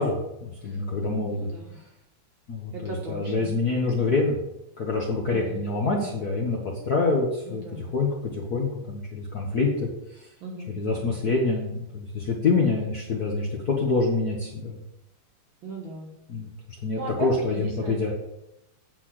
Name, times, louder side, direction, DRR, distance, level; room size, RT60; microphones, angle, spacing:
voice 1, 0.0-1.5 2.5-4.4 4.8-6.6 6.8-9.9 10.7-14.8 16.3-16.5 16.8-18.1, left 3 dB, 55° left, -2 dB, 1.0 m, -26 dB
voice 2, 1.3-1.8 2.7-3.5 5.3-6.1 7.5-7.9 10.4-11.1 15.6-16.1 16.9-18.0, right 3 dB, 55° right, -1 dB, 1.6 m, -38 dB
9.0 x 4.1 x 6.4 m, 0.87 s
omnidirectional pair, 3.3 m